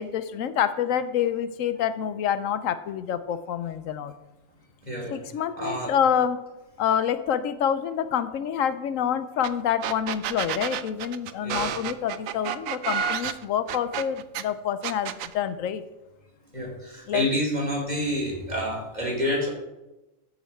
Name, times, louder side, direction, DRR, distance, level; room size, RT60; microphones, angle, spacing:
voice 1, 0.0-4.1 5.1-6.4 6.8-15.8 17.1-17.3, left 9 dB, 85° left, 12 dB, 1.0 m, -27 dB
voice 2, 4.8-5.2 5.6-5.9 11.4-11.7 16.5-19.5, equal, 35° right, -3 dB, 2.8 m, -28 dB
sound 1, 9.4-9.5 9.8-14.4 14.8-15.3, right 8 dB, 90° right, 1.0 m, -30 dB
13.5 x 5.6 x 4.4 m, 1.0 s
omnidirectional pair, 1.3 m